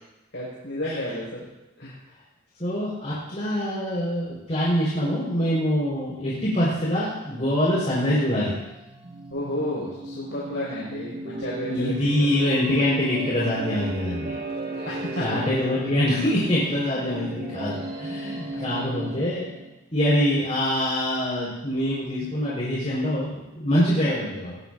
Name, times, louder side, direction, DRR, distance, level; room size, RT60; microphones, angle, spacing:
voice 1, 0.3-1.5 1.8-1.9 9.3-12.1 14.8-15.2, left 1 dB, 65° left, -7 dB, 5.8 m, -31 dB
voice 2, 2.6-8.5 11.6-14.4 14.8-14.9 15.2-19.5 19.9-24.6, equal, 35° left, -8 dB, 5.0 m, -24 dB
sound 1, 8.4-19.8, right 2 dB, 50° right, 1.8 m, -35 dB
21.0 x 18.0 x 2.8 m, 0.97 s
head